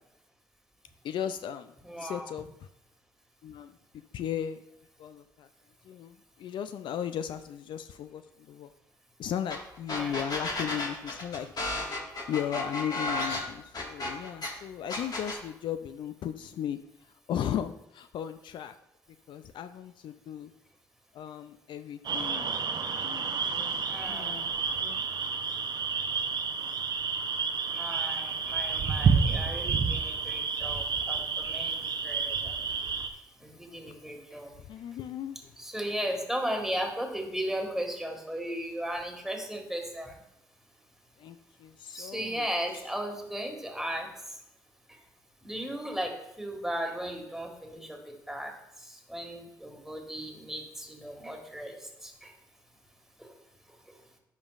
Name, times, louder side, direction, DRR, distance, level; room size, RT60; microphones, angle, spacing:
voice 1, 1.0-2.5 3.4-3.8 4.1-4.6 5.0-5.5 5.8-8.7 9.2-11.7 12.3-16.8 17.3-18.7 19.3-20.5 21.1-24.5 24.8-25.0 34.6-35.5 41.2-42.5, left 9 dB, 65° left, 11 dB, 0.3 m, -36 dB
voice 2, 1.8-2.3 9.9-10.3 23.9-24.3 27.7-31.8 32.0-32.6 33.4-34.5 35.6-40.1 41.9-44.1 45.4-48.0 48.3-48.5 48.9-51.7 52.0-52.3 53.2-53.3, equal, 5° right, 2 dB, 1.8 m, -36 dB
sound 1, 9.5-9.6 9.9-14.5 14.9-15.4, left 2 dB, 50° left, 1.7 m, -33 dB
sound 2, 22.0-33.1, right 5 dB, 55° right, 0.7 m, -30 dB
10.5 x 5.2 x 2.4 m, 0.83 s
supercardioid pair, 55°, 9 cm